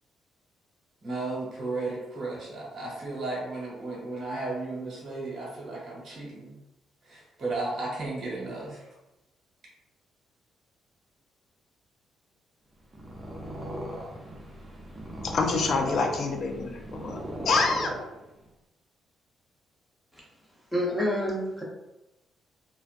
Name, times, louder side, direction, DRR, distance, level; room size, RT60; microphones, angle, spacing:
voice 1, 1.0-6.6 7.1-8.8, right 2 dB, 50° right, -7 dB, 1.1 m, -34 dB
Purr, 12.8-18.5, equal, 25° right, 0.5 m, -38 dB
voice 2, 15.2-17.2 17.5-18.1, left 3 dB, 60° left, 3 dB, 0.4 m, -26 dB
voice 3, 20.7-21.6, equal, 5° left, -4 dB, 0.8 m, -28 dB
2.3 x 2.2 x 2.5 m, 0.94 s
cardioid pair, 90°, 0 cm